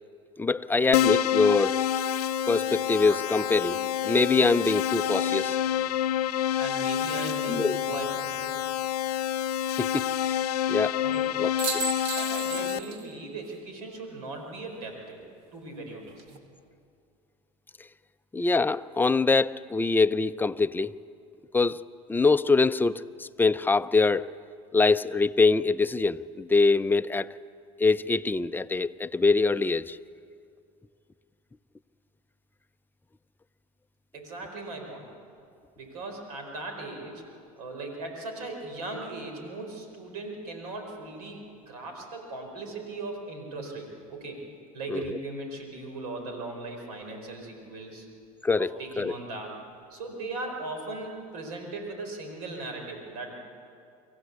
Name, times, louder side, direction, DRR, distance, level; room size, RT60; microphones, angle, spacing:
voice 1, 0.4-1.8 2.5-3.8 4.0-5.6 7.5-7.8 9.8-10.4 10.7-11.0 11.4-11.8 18.3-20.9 21.5-21.8 22.1-24.3 24.7-27.3 27.8-30.0 44.9-45.2 48.4-48.7 49.0-49.1, left 3 dB, 10° left, 12 dB, 0.5 m, -24 dB
Keyboard (musical), 0.9-12.8, left 10 dB, 85° left, 0.6 m, -28 dB
sound 1, 1.2-1.3 2.6-5.9 7.7-8.4 11.1-11.3 11.6-13.1 13.5-13.6 15.9-16.4, right 5 dB, 65° right, 2.2 m, -38 dB
voice 2, 6.6-8.5 11.0-11.3 12.2-15.2 15.5-16.2 34.1-35.1 35.8-37.2 37.6-44.4 44.7-48.1 48.6-49.5 49.9-53.4, right 2 dB, 80° right, 3 dB, 4.4 m, -38 dB
24.5 x 16.0 x 8.3 m, 2.4 s
hypercardioid pair, 85°, 19 cm